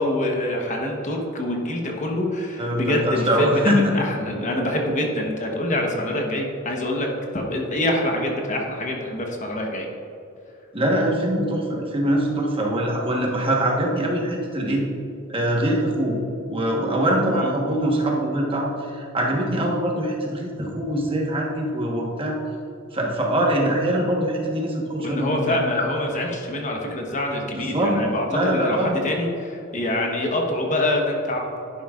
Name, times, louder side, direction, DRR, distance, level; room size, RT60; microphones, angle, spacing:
voice 1, 0.0-7.1 7.3-9.9 17.3-17.5 25.0-31.5, left 1 dB, 35° left, 1 dB, 1.1 m, -25 dB
voice 2, 2.6-3.9 10.7-14.8 15.3-16.2 16.5-22.4 22.9-25.6 27.5-27.9 28.3-29.0, right 1 dB, 25° right, -1 dB, 1.3 m, -23 dB
11.0 x 10.0 x 2.5 m, 2.8 s
head